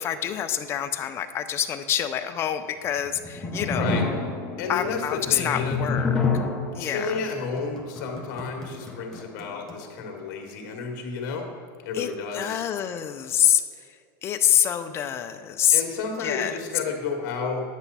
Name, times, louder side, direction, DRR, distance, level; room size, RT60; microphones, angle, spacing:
voice 1, 0.0-4.0 4.7-6.2 6.7-7.2 11.9-13.6 14.2-15.8 16.2-16.6, left 10 dB, 25° left, 9 dB, 0.4 m, -26 dB
sound 1, 2.9-10.1, left 3 dB, 5° left, 0.9 m, -30 dB
voice 2, 3.7-4.0 4.6-5.8 6.8-11.5 11.8-12.6 15.7-17.6, left 4 dB, 55° left, 2 dB, 1.7 m, -31 dB
9.9 x 8.0 x 4.1 m, 2.2 s
supercardioid pair, 155°, 10 cm